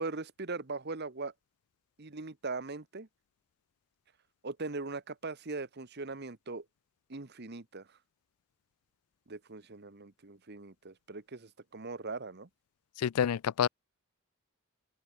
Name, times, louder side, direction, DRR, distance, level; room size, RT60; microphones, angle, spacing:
voice 1, 0.0-1.3 2.0-3.1 4.4-6.6 7.1-7.9 9.3-12.5, right 3 dB, 45° right, 1.1 m, -40 dB
voice 2, 13.0-13.7, left 8 dB, 85° left, 0.4 m, -28 dB
open air
head